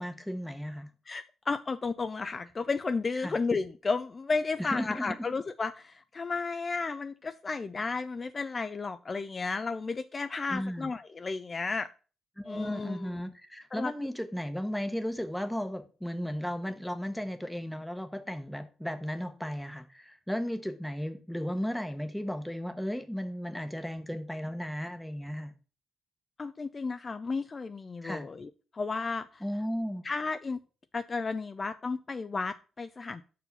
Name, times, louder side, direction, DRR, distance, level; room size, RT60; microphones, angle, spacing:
voice 1, 0.0-0.9 3.2-3.3 4.6-5.2 10.5-10.9 12.4-25.5 28.0-28.2 29.4-30.0, equal, 5° left, 1.0 m, -35 dB
voice 2, 1.1-11.9 12.4-13.2 13.7-13.9 26.4-29.4 30.0-30.6 30.9-33.2, left 4 dB, 30° left, 0.4 m, -33 dB
5.8 x 4.8 x 5.3 m
cardioid pair, 90°, 0 cm